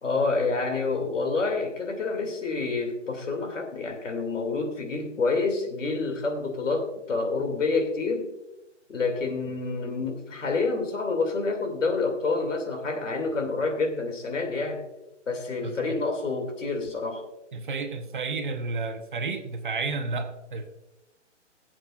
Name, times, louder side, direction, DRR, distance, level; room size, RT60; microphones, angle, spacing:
voice 1, 0.0-8.3 8.9-14.9 15.3-17.2, left 3 dB, 90° left, 4 dB, 2.6 m, -28 dB
voice 2, 15.6-15.9 17.5-20.7, right 3 dB, 40° right, 6 dB, 1.1 m, -31 dB
20.5 x 7.9 x 2.4 m, 0.95 s
hypercardioid pair, 175°, 37 cm